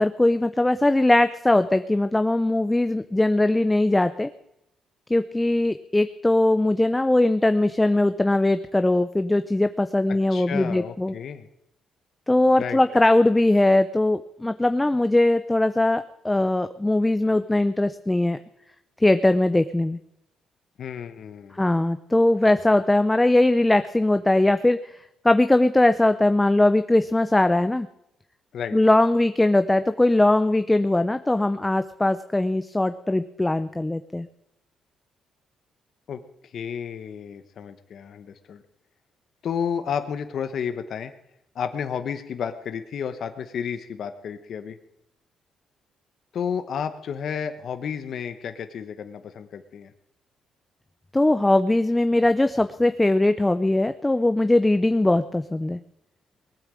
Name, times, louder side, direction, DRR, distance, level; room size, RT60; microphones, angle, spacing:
voice 1, 0.0-4.3 5.1-11.1 12.3-18.4 19.0-20.0 21.6-25.0 25.2-27.9 28.7-34.3 51.1-55.8, left 2 dB, 10° left, 10 dB, 0.7 m, -20 dB
voice 2, 10.1-11.5 12.6-13.0 20.8-21.6 28.5-28.8 36.1-36.2 36.5-38.6 39.4-41.1 41.5-44.8 46.3-49.9, left 7 dB, 60° left, 8 dB, 1.1 m, -32 dB
19.0 x 8.9 x 7.7 m, 0.82 s
cardioid pair, 90°, 0 cm